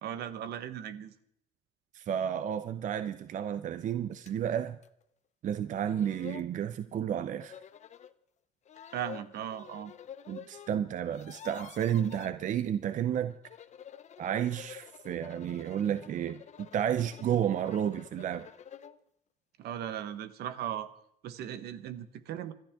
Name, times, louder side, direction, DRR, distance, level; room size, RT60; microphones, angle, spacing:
voice 1, 0.0-1.1 8.9-9.9 19.6-20.9 21.2-22.5, right 10 dB, 70° right, 12 dB, 1.2 m, -37 dB
voice 2, 1.9-4.8 5.4-7.5 10.3-13.4 14.2-18.5, right 9 dB, 50° right, 12 dB, 0.6 m, -31 dB
sound 1, 4.3-4.4 4.8-4.9 5.6-5.7 5.9-6.5 7.4-8.1 8.7-10.7 11.0-12.3 13.3-19.0, left 9 dB, 45° left, 0.7 m, -49 dB
27.0 x 12.0 x 3.6 m, 0.72 s
cardioid pair, 110°, 17 cm